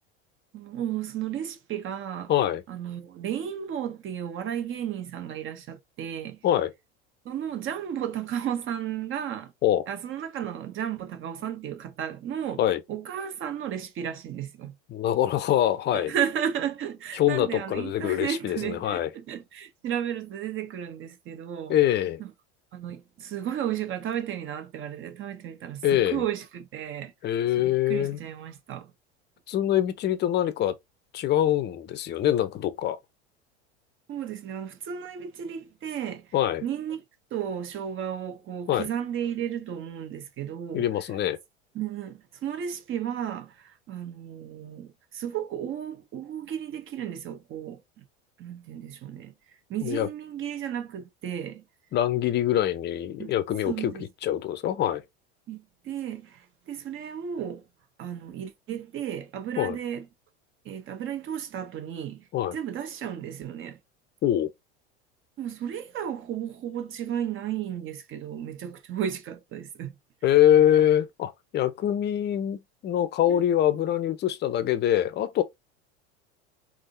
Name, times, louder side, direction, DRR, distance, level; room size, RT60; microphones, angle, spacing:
voice 1, 0.5-2.3 2.7-6.4 7.2-9.5 9.9-12.6 12.9-14.7 15.9-21.8 22.2-22.3 22.7-27.1 27.6-28.9 34.1-36.3 36.6-37.0 37.3-40.9 41.7-48.0 48.4-49.3 49.7-51.6 53.2-53.3 53.7-54.0 55.5-57.6 58.0-60.1 60.6-62.3 62.5-63.8 65.4-69.9 73.3-73.4, right 9 dB, 40° right, 0.9 m, -33 dB
voice 2, 2.3-2.6 6.4-6.7 9.6-9.9 12.6-12.8 14.9-16.1 17.1-19.1 21.7-22.2 25.8-26.2 27.2-28.2 29.5-30.8 31.1-33.0 36.3-36.6 38.7-38.9 40.7-41.4 49.8-50.1 51.9-53.9 54.2-55.0 59.6-59.8 62.3-62.6 64.2-64.5 70.2-75.4, left 11 dB, 30° left, 0.6 m, -24 dB
3.5 x 2.6 x 2.6 m
hypercardioid pair, 90°, 33 cm